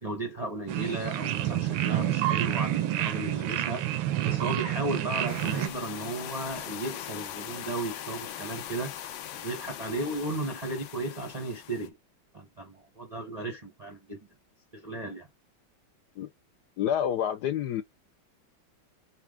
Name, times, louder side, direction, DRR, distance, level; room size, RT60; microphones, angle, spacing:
voice 1, 0.0-3.8 4.2-8.9 9.4-12.0 12.3-14.2 14.7-15.3, right 2 dB, 45° right, 0.5 m, -35 dB
sound 1, 0.7-5.7, right 13 dB, 90° right, 1.4 m, -28 dB
sound 2, 5.3-11.9, left 10 dB, 90° left, 1.5 m, -40 dB
voice 2, 16.8-17.8, left 10 dB, 70° left, 1.0 m, -28 dB
5.7 x 2.3 x 3.6 m
omnidirectional pair, 2.1 m